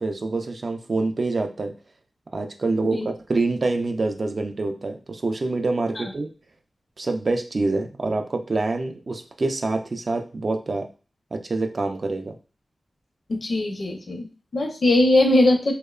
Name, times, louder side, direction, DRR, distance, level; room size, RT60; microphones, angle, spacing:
voice 1, 0.0-1.7 2.3-6.3 7.0-10.9 11.3-12.4, right 3 dB, 60° right, 6 dB, 0.3 m, -26 dB
voice 2, 13.3-15.7, left 1 dB, 70° left, 3 dB, 0.5 m, -20 dB
2.9 x 2.0 x 2.3 m, 0.34 s
cardioid pair, 55°, 0 cm